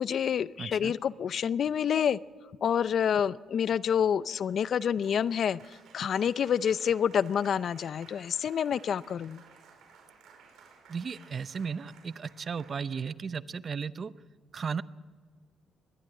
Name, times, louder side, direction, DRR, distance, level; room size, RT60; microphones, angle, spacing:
voice 1, 0.0-2.2 2.6-5.6 5.9-9.4, left 8 dB, 60° left, 18 dB, 0.5 m, -28 dB
voice 2, 0.6-0.9 10.9-14.1 14.5-14.8, right 6 dB, 45° right, 16 dB, 0.7 m, -35 dB
Applause, 4.0-13.2, right 5 dB, 80° right, 4.9 m, -57 dB
21.5 x 14.5 x 8.8 m, 1.5 s
cardioid pair, 90°, 0 cm